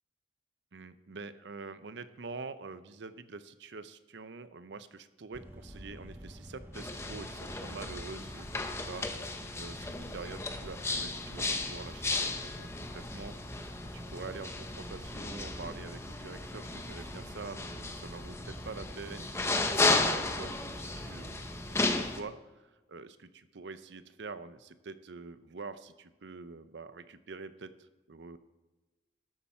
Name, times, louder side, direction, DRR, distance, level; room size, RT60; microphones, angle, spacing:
voice 1, 0.7-9.1 9.6-28.4, right 4 dB, 70° right, 12 dB, 0.6 m, -46 dB
sound 1, 5.3-22.0, equal, 10° right, 0.9 m, -48 dB
sound 2, 6.7-22.2, left 2 dB, 15° left, 0.7 m, -34 dB
13.0 x 8.6 x 4.4 m, 1.2 s
head